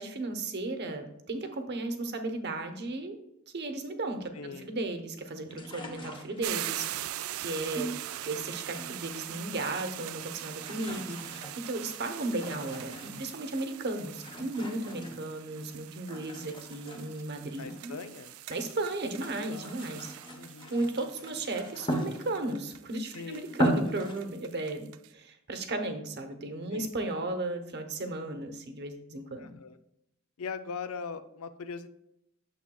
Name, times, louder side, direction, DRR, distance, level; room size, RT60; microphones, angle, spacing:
voice 1, 0.0-3.2 3.5-7.9 8.2-18.0 18.5-20.1 20.7-24.9 25.1-29.5, right 2 dB, 55° right, 6 dB, 0.9 m, -35 dB
voice 2, 4.3-4.7 17.6-18.4 19.5-20.0 20.3-20.8 23.1-23.5 26.7-26.9 29.4-29.8 30.4-31.9, left 5 dB, 85° left, 11 dB, 0.5 m, -41 dB
sound 1, 5.5-6.8 7.7-9.2 9.4-10.1 10.4-13.5 14.1-15.7 16.1-18.7 19.1-22.6 23.1-23.2 23.5-24.2, equal, 25° left, 1.0 m, -38 dB
sound 2, 6.4-25.1, right 13 dB, 75° right, 0.3 m, -42 dB
8.8 x 6.9 x 2.3 m, 0.81 s
head